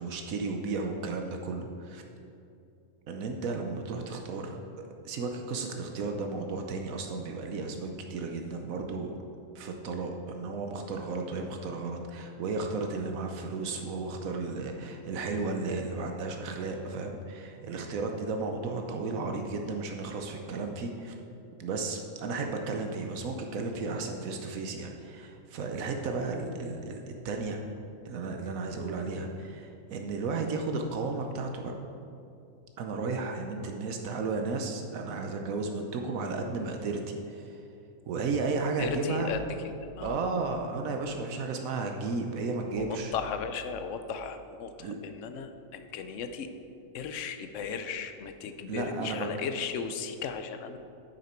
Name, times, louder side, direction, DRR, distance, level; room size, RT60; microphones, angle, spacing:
voice 1, 0.0-2.0 3.1-4.6 5.0-9.2 9.5-21.1 21.6-27.6 28.0-31.7 32.8-37.6 38.1-39.3 40.0-43.1 44.8-45.0 48.7-49.3, right 3 dB, 85° right, 3 dB, 1.2 m, -34 dB
voice 2, 38.6-40.1 42.8-46.5 46.9-50.8, left 6 dB, 70° left, 9 dB, 0.9 m, -36 dB
9.5 x 6.6 x 4.4 m, 2.6 s
omnidirectional pair, 1.4 m